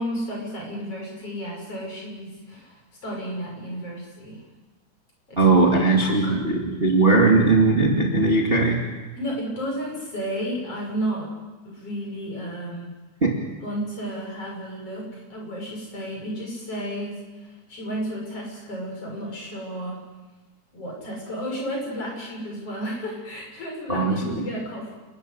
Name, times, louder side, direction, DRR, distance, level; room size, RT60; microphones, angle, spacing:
voice 1, 0.0-2.8 3.0-4.4 5.3-5.5 6.0-6.4 9.2-11.3 11.6-12.9 13.6-20.0 20.7-24.9, equal, 45° left, -1 dB, 8.0 m, -32 dB
voice 2, 5.4-8.8 13.2-13.3 23.9-24.5, right 3 dB, 20° right, 0 dB, 2.4 m, -19 dB
29.5 x 14.0 x 9.9 m, 1.2 s
omnidirectional pair, 3.7 m